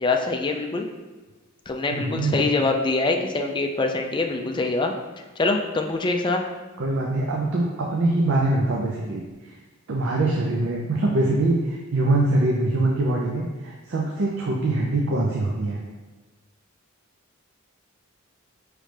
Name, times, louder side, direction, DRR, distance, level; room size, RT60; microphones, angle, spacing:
voice 1, 0.0-0.9 1.7-4.9 5.4-6.4, left 3 dB, 20° left, 3 dB, 0.3 m, -24 dB
voice 2, 1.9-2.5 6.8-9.2 9.9-15.8, right 2 dB, 60° right, -2 dB, 0.5 m, -23 dB
5.1 x 3.2 x 3.2 m, 1.3 s
head